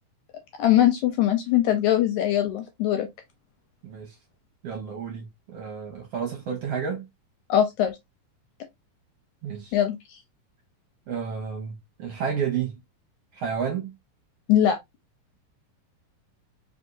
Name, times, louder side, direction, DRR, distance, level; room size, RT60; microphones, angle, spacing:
voice 1, 0.6-3.1 7.5-8.0 9.7-10.2 14.5-14.8, left 11 dB, 75° left, 1.9 m, -21 dB
voice 2, 3.8-4.1 4.6-7.1 9.4-9.7 11.1-11.7 12.0-12.7 13.4-13.9, right 7 dB, 60° right, 1.7 m, -31 dB
4.7 x 3.5 x 2.6 m
omnidirectional pair, 3.9 m